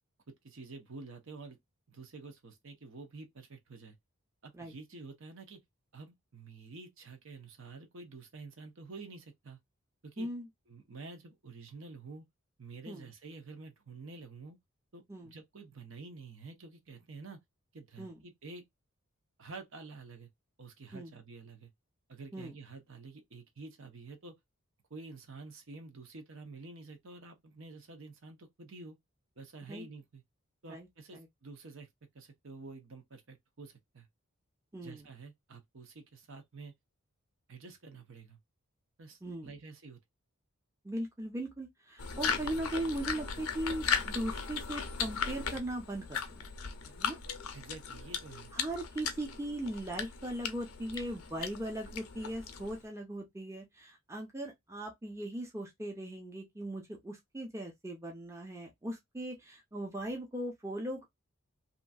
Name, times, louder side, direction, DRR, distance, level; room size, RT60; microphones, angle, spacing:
voice 1, 0.3-1.6 1.9-4.0 4.4-5.6 5.9-9.6 10.0-10.3 10.7-12.3 12.6-14.6 14.9-17.4 17.7-18.6 19.4-20.3 20.6-21.7 22.1-24.3 24.9-29.0 29.4-30.2 30.6-31.9 32.1-34.1 34.8-36.7 37.5-38.4 39.0-40.0 47.5-48.5, right 3 dB, 65° right, 0.8 m, -49 dB
voice 2, 34.7-35.0 39.2-39.5 40.8-47.2 48.5-61.1, right 1 dB, 15° right, 0.6 m, -39 dB
sound 1, 42.0-52.8, left 6 dB, 85° left, 0.6 m, -37 dB
2.9 x 2.6 x 2.3 m
head